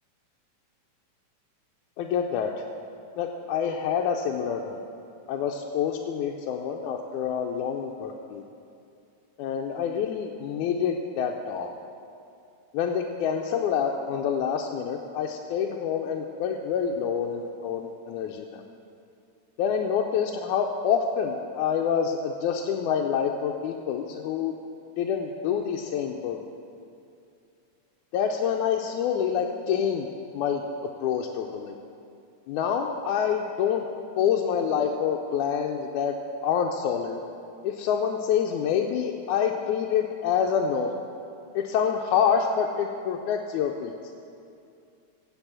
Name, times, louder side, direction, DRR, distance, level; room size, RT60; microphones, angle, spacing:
voice 1, 2.0-2.5 3.2-4.8 5.3-8.4 9.4-11.7 12.7-18.6 19.6-24.5 25.0-26.4 28.1-30.1 30.3-30.6 31.0-31.7 32.5-33.8 34.2-36.1 36.4-37.2 37.6-40.9 41.5-43.9, left 7 dB, 90° left, 1 dB, 2.0 m, -27 dB
8.9 x 7.6 x 7.4 m, 2.5 s
omnidirectional pair, 3.4 m